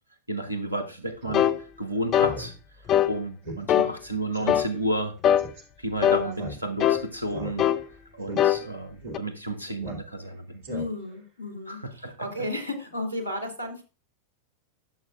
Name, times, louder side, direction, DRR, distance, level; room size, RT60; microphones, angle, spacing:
voice 1, 0.3-2.5 3.0-5.2 5.8-7.7 8.1-10.6 11.7-12.1, right 1 dB, 85° right, 9 dB, 1.1 m, -32 dB
Speech synthesizer, 1.2-1.4 1.8-1.9 2.2-2.5 2.9-3.0 3.4-3.6 3.9-4.0 4.3-4.6 5.4-5.6 6.3-6.9 7.3-7.9 8.2-8.4 9.0-9.2 9.8-10.3 10.6-11.2, equal, 50° right, 2.5 m, -38 dB
sound 1, 1.3-1.6 2.1-2.4 2.9-3.1 3.7-3.9 4.5-4.7 5.2-5.5 6.0-6.3 6.8-7.0 7.6-7.8 8.4-8.6 9.1-9.2, left 10 dB, 30° left, 0.4 m, -21 dB
voice 2, 6.0-6.5 10.7-13.8, left 1 dB, 85° left, 3 dB, 2.3 m, -34 dB
11.0 x 7.3 x 2.5 m, 0.31 s
figure-of-eight pair, 90°, 0 cm